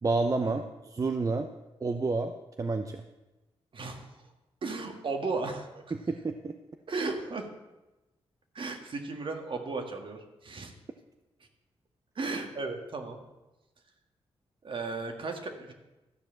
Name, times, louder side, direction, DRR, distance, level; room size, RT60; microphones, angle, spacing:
voice 1, 0.0-1.5 1.8-2.3 2.6-3.0 5.9-6.5, right 3 dB, 35° right, 7 dB, 0.7 m, -29 dB
voice 2, 3.7-4.1 4.6-5.8 6.9-7.4 8.5-10.7 12.1-13.2 14.6-15.7, right 3 dB, 55° right, 5 dB, 1.7 m, -35 dB
13.0 x 4.9 x 7.6 m, 1.0 s
cardioid pair, 80°, 10 cm